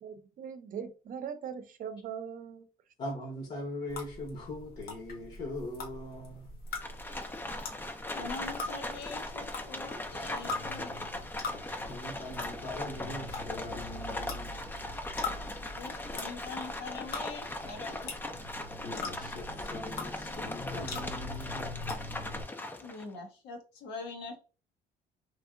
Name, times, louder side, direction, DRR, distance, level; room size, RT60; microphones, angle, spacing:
voice 1, 0.0-2.7, right 7 dB, 55° right, 0.6 m, -40 dB
voice 2, 3.0-6.5 11.5-14.6 18.8-21.7, left 1 dB, 40° left, 0.9 m, -41 dB
sound 1, 3.9-22.4, left 3 dB, 65° left, 1.0 m, -42 dB
Livestock farm animals working animals, 6.7-23.1, left 1 dB, 10° left, 0.4 m, -39 dB
voice 3, 8.1-11.0 15.8-18.1 22.8-24.4, left 4 dB, 85° left, 1.1 m, -43 dB
3.2 x 2.7 x 2.5 m
cardioid pair, 110°, 17 cm